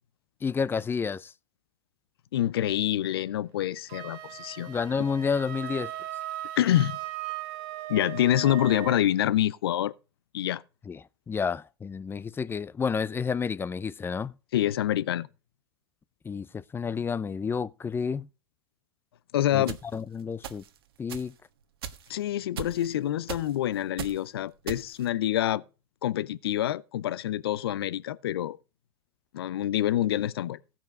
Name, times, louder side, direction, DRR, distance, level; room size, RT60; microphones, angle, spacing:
voice 1, 0.4-1.3 4.7-5.9 10.9-14.3 16.2-18.3 19.5-19.7 19.9-20.6 21.0-21.3, left 6 dB, 15° left, 0.6 m, -30 dB
voice 2, 2.3-4.7 6.6-7.0 7.9-9.9 10.3-10.6 14.5-15.3 19.3-19.8 22.1-25.6 26.0-28.6 29.3-30.6, left 12 dB, 80° left, 0.6 m, -26 dB
Wind instrument woodwind instrument, 3.9-9.1, right 15 dB, 60° right, 1.4 m, -38 dB
sound 1, 19.7-19.8 20.4-20.8 21.1-21.3 21.8-22.1 22.6-22.9 23.3-23.6 24.0-24.2 24.7-25.1, right 8 dB, 75° right, 1.4 m, -37 dB
16.0 x 5.9 x 5.2 m
hypercardioid pair, 100°, 13 cm